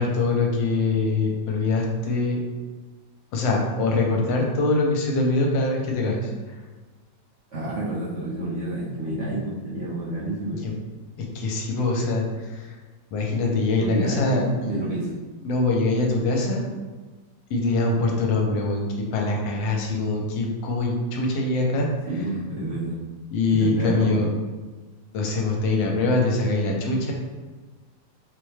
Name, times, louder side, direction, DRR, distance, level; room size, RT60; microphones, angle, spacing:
voice 1, 0.0-2.4 3.3-6.3 10.6-10.7 11.2-12.7 13.1-14.8 15.4-16.6 17.5-21.9 23.3-24.3 25.1-27.1, left 3 dB, 85° left, 0 dB, 1.4 m, -23 dB
voice 2, 7.5-10.6 13.8-15.1 22.1-23.0 23.5-24.2, right 1 dB, 50° right, -9 dB, 0.9 m, -29 dB
4.1 x 2.2 x 3.2 m, 1.3 s
omnidirectional pair, 2.1 m